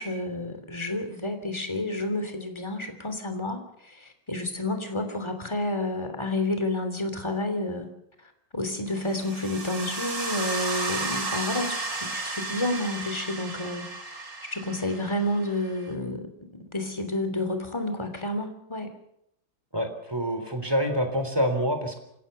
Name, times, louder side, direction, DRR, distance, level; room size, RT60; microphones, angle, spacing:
voice 1, 0.0-7.9 8.5-16.3 16.7-18.9, left 1 dB, 15° left, 7 dB, 3.2 m, -30 dB
sound 1, 9.0-15.9, right 3 dB, 55° right, 3.7 m, -33 dB
voice 2, 19.7-22.0, equal, 15° right, 7 dB, 3.6 m, -26 dB
28.0 x 16.0 x 6.9 m, 0.76 s
omnidirectional pair, 1.8 m